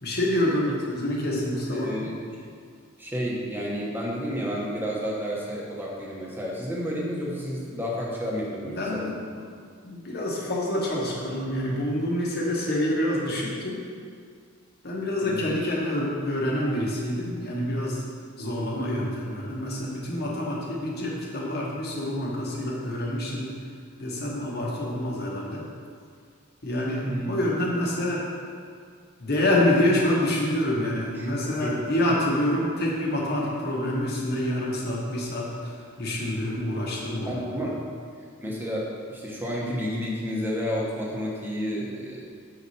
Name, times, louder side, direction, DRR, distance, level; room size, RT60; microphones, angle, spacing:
voice 1, 0.0-2.1 8.6-9.2 9.8-13.8 14.8-18.0 18.4-23.5 24.0-25.6 26.6-28.2 29.2-37.7, left 1 dB, 50° left, -4 dB, 1.2 m, -27 dB
voice 2, 1.7-2.4 3.0-9.1 15.2-15.5 27.1-27.4 31.1-31.3 31.6-32.1 37.2-37.8 38.4-42.2, equal, 10° right, -4 dB, 1.0 m, -31 dB
7.0 x 4.9 x 4.2 m, 2.1 s
head